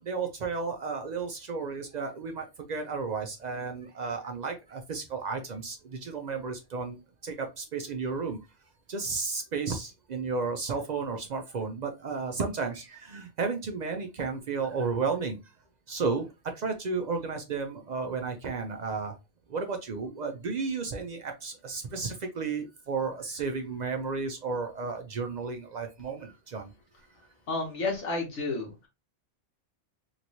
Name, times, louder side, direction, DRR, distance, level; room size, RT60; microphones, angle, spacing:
voice 1, 0.0-8.4 8.9-15.4 15.9-16.3 16.5-19.1 19.5-26.7, right 4 dB, 65° right, 5 dB, 0.4 m, -33 dB
voice 2, 27.5-28.9, left 3 dB, 70° left, 1 dB, 1.2 m, -31 dB
3.0 x 2.9 x 2.6 m, 0.25 s
omnidirectional pair, 1.3 m